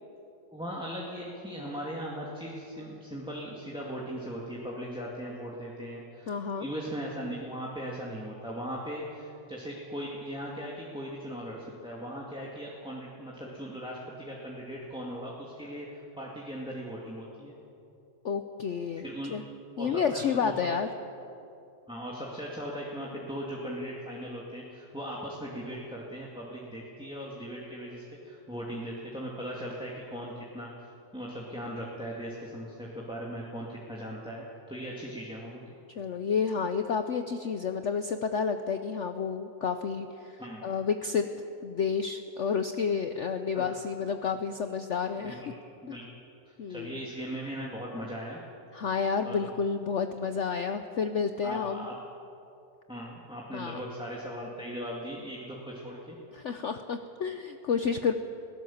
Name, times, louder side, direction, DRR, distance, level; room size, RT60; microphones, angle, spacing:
voice 1, 0.5-17.5 19.0-19.3 19.8-20.5 21.9-30.7 31.1-35.7 40.4-40.7 43.5-43.7 45.2-45.5 45.8-46.0 46.7-48.4 49.2-49.5 51.4-52.0 52.9-56.2, equal, 5° right, -4 dB, 2.3 m, -39 dB
voice 2, 6.3-6.7 18.2-19.0 19.3-19.4 19.8-20.9 36.0-41.3 41.6-45.4 45.9-46.0 46.6-47.0 48.7-51.9 53.5-53.8 56.3-58.1, left 6 dB, 55° left, 8 dB, 0.9 m, -30 dB
21.5 x 17.5 x 7.3 m, 2.8 s
omnidirectional pair, 1.8 m